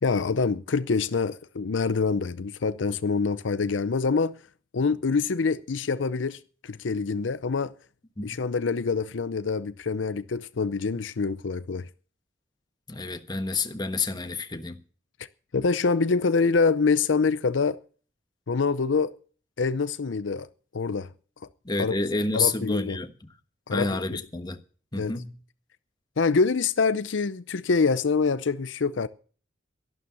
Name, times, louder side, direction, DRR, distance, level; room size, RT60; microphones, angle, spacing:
voice 1, 0.0-4.4 4.7-7.7 8.2-11.8 15.5-17.8 18.5-19.1 19.6-20.5 20.7-21.1 21.8-22.0 22.3-23.0 23.7-24.2 25.0-25.1 26.2-29.1, left 4 dB, 80° left, 0.6 m, -25 dB
voice 2, 12.9-14.8 21.6-23.1 23.7-24.6 24.9-25.4, left 3 dB, 25° left, 1.2 m, -29 dB
12.5 x 11.5 x 7.1 m
head